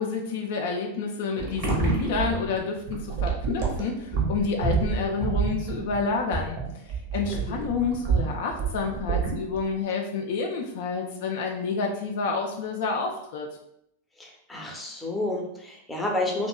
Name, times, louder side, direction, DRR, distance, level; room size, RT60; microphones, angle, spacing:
voice 1, 0.0-6.6 7.1-13.5, left 4 dB, 55° left, 1 dB, 0.3 m, -29 dB
sound 1, 1.4-9.8, right 5 dB, 45° right, 0.7 m, -28 dB
voice 2, 14.2-16.5, left 2 dB, 5° left, -2 dB, 0.6 m, -30 dB
2.7 x 2.1 x 2.2 m, 0.74 s
figure-of-eight pair, 90°, 0 cm